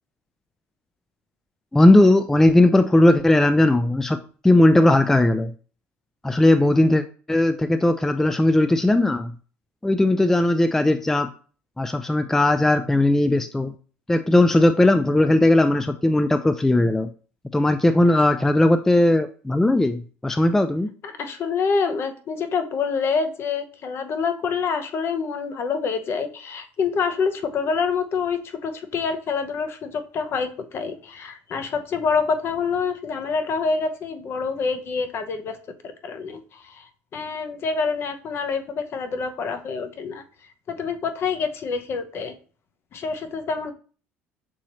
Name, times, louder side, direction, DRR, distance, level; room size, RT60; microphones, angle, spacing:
voice 1, 1.7-5.5 6.2-9.3 9.8-11.3 11.8-13.7 14.1-17.1 17.5-20.9, left 1 dB, 5° left, 10 dB, 0.3 m, -18 dB
voice 2, 21.0-35.6 35.8-40.2 40.7-42.3 42.9-43.7, left 5 dB, 50° left, 8 dB, 0.7 m, -26 dB
6.2 x 3.0 x 2.9 m, 0.40 s
supercardioid pair, 85°, 5 cm